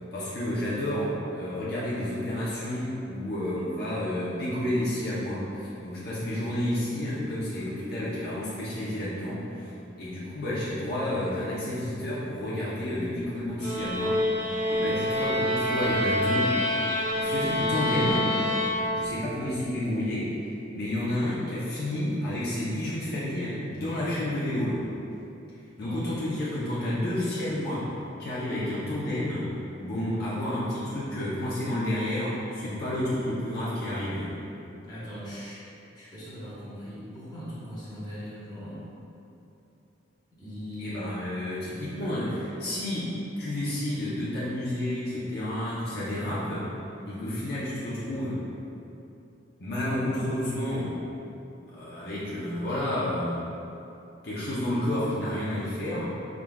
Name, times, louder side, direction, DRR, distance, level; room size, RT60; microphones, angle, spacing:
voice 1, 0.1-14.2 14.7-16.6 17.1-18.4 18.9-20.3 20.7-24.8 25.8-27.9 28.2-29.5 29.8-34.3 40.8-46.7 47.1-48.4 49.6-51.0 51.7-53.4 54.2-56.1, left 1 dB, 60° left, -9 dB, 0.7 m, -30 dB
sound 1, 13.6-19.3, left 1 dB, 45° right, 0.7 m, -27 dB
voice 2, 34.9-35.7 35.9-38.9 40.3-41.1, equal, 20° left, -10 dB, 1.1 m, -39 dB
4.7 x 3.7 x 2.3 m, 2.8 s
head